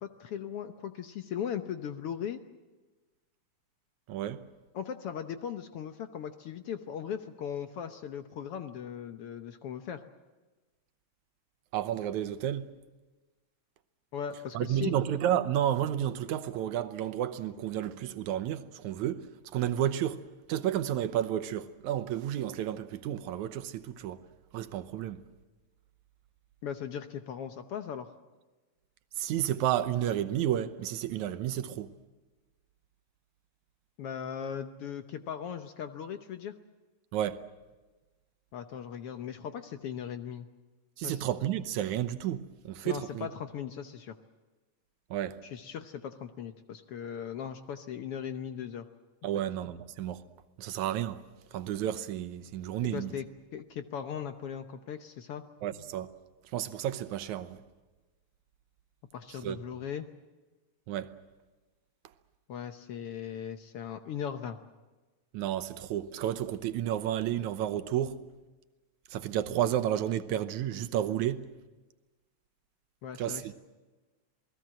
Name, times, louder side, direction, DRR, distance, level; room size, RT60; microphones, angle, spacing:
voice 1, 0.0-2.4 4.7-10.0 14.1-14.9 26.6-28.1 34.0-36.5 38.5-40.5 41.0-41.2 42.8-44.2 45.4-48.9 52.9-55.4 59.1-60.1 62.5-64.6 73.0-73.5, left 8 dB, 65° left, 1.6 m, -38 dB
voice 2, 4.1-4.4 11.7-12.7 14.5-19.3 19.5-20.2 20.5-24.2 24.5-25.2 29.2-31.9 37.1-37.4 41.0-43.3 45.1-45.4 49.2-50.2 50.6-51.2 51.5-53.1 55.6-56.1 56.5-57.6 59.4-59.6 60.9-61.2 65.3-68.2 69.1-71.4 73.2-73.5, right 11 dB, 80° right, 2.3 m, -31 dB
28.0 x 19.0 x 7.6 m
omnidirectional pair, 3.3 m